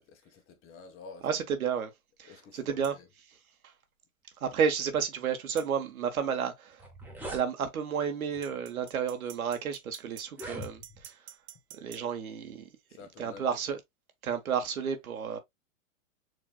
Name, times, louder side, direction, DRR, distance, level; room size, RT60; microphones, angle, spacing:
voice 1, 0.0-1.4 2.2-3.1 12.9-13.6, left 4 dB, 30° left, 1.2 m, -50 dB
voice 2, 1.2-1.9 2.2-3.0 3.3-3.4 3.6-3.7 4.4-6.8 7.3-11.2 11.7-12.7 13.2-13.8 14.2-15.4, right 7 dB, 80° right, 1.3 m, -31 dB
sound 1, 2.8-3.0 5.6-5.7 8.4-12.1, right 14 dB, 30° right, 0.5 m, -49 dB
sound 2, 6.7-7.5 8.3-8.6 9.3-9.4 10.2-11.1, equal, 5° right, 1.2 m, -42 dB
6.5 x 2.8 x 2.2 m
hypercardioid pair, 110°, 42 cm